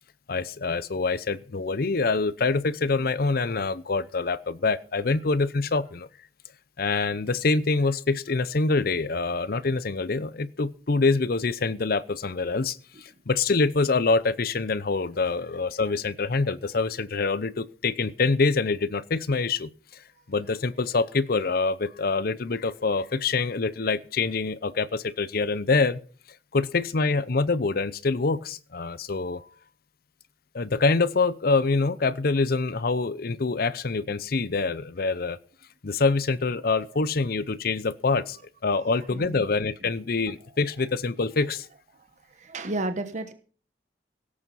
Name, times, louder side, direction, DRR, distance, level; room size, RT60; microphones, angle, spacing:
voice 1, 0.3-6.1 6.8-19.7 20.3-26.0 26.5-29.4 30.5-35.4 35.8-41.7, left 3 dB, 55° left, 17 dB, 0.7 m, -25 dB
voice 2, 39.1-39.4 41.9-43.3, right 2 dB, 45° right, 8 dB, 1.1 m, -33 dB
17.0 x 8.6 x 5.6 m, 0.41 s
head